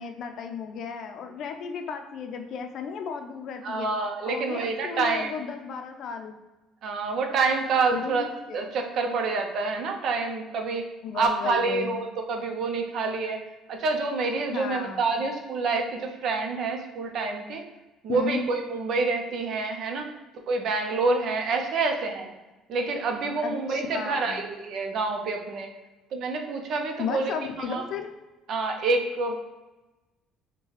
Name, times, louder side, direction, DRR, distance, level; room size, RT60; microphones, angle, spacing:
voice 1, 0.0-3.9 4.3-6.3 7.9-8.7 11.0-12.0 14.5-15.0 18.1-18.4 23.4-24.5 27.0-28.1, left 6 dB, 60° left, 6 dB, 0.5 m, -34 dB
voice 2, 3.6-5.4 6.8-8.3 8.5-10.9 11.1-13.4 13.7-17.6 18.0-20.1 20.5-22.3 22.7-25.7 26.1-27.8 28.5-29.4, right 3 dB, 60° right, 4 dB, 0.6 m, -27 dB
5.4 x 2.2 x 3.3 m, 1.1 s
cardioid pair, 100°, 0 cm